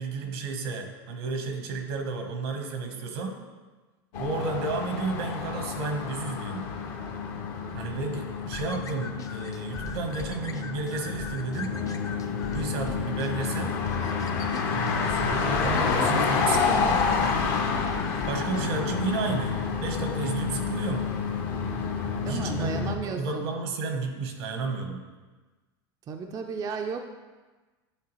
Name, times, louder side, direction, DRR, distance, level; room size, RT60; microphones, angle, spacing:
voice 1, 0.0-3.4 4.2-6.7 7.7-11.8 12.5-13.8 14.7-17.1 18.3-21.1 22.2-25.0, right 4 dB, 75° right, 4 dB, 1.1 m, -32 dB
sound 1, 4.1-23.0, left 5 dB, 60° left, 0.9 m, -29 dB
sound 2, 8.5-18.7, left 3 dB, 25° left, 0.5 m, -41 dB
voice 2, 22.2-23.5 26.1-27.0, right 5 dB, 30° right, 4 dB, 0.4 m, -34 dB
9.4 x 3.5 x 3.0 m, 1.3 s
hypercardioid pair, 110°, 13 cm